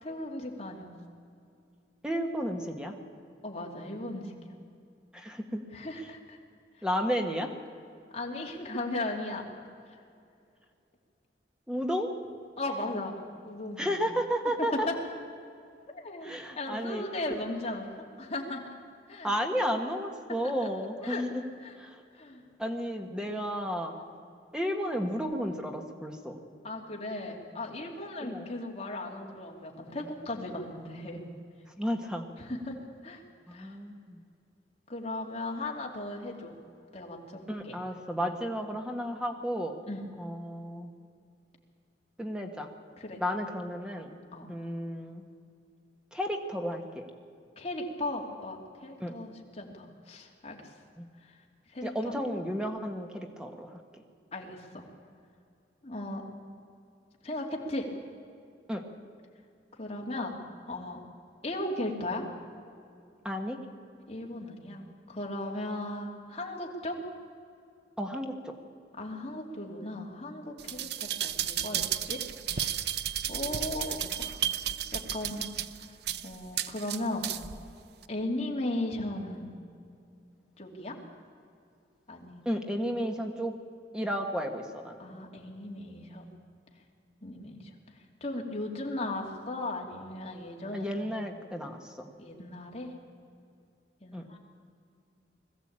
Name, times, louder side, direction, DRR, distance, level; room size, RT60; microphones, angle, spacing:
voice 1, 0.0-0.9 3.4-4.3 5.7-6.4 8.1-9.5 12.6-13.2 13.4-13.9 14.6-15.0 15.9-17.9 18.2-18.8 19.1-19.3 20.3-20.7 21.0-21.2 21.6-21.7 22.1-22.4 24.0-24.1 26.6-31.3 32.4-33.2 33.5-33.8 34.9-36.5 36.9-37.8 39.9-40.1 43.0-43.2 44.3-44.5 47.6-50.7 51.7-52.2 54.3-54.8 55.8-56.2 57.2-57.9 59.8-61.0 61.4-62.3 64.1-67.0 69.0-72.2 72.5-72.8 73.3-74.4 74.9-75.4 76.2-77.3 78.1-79.5 80.6-81.0 82.1-82.6 85.0-86.3 87.2-87.7 88.2-91.0 92.2-92.9 94.0-94.4, left 1 dB, 35° left, 0 dB, 2.8 m, -37 dB
voice 2, 2.0-2.9 5.1-5.6 6.8-7.5 11.7-12.1 13.8-14.9 16.2-17.0 19.2-21.4 21.8-22.0 22.6-23.9 24.5-26.4 28.2-28.5 31.8-32.3 33.5-34.2 37.5-39.8 40.2-40.9 42.2-42.7 43.2-44.1 44.5-45.2 46.1-47.1 49.0-49.1 51.0-51.1 51.8-53.8 58.7-58.8 63.2-63.6 68.0-68.5 82.4-83.5 83.9-85.0 90.7-92.1 94.1-94.2, equal, 5° right, 4 dB, 1.4 m, -32 dB
sound 1, 70.6-77.6 78.0-78.1, right 10 dB, 65° right, 0.6 m, -33 dB
21.0 x 14.5 x 8.8 m, 2.5 s
head